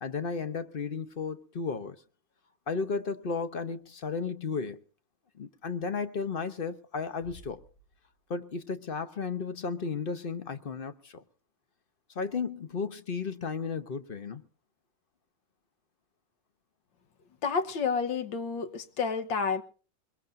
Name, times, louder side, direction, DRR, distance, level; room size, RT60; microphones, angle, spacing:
voice 1, 0.0-2.0 2.7-4.8 5.4-7.6 8.3-11.2 12.1-14.4, left 5 dB, 40° left, 0.8 m, -34 dB
Bass drum, 7.2-8.6, left 1 dB, 65° left, 3.8 m, -53 dB
voice 2, 17.4-19.6, left 5 dB, 85° left, 1.9 m, -30 dB
22.5 x 22.0 x 2.6 m
omnidirectional pair, 2.0 m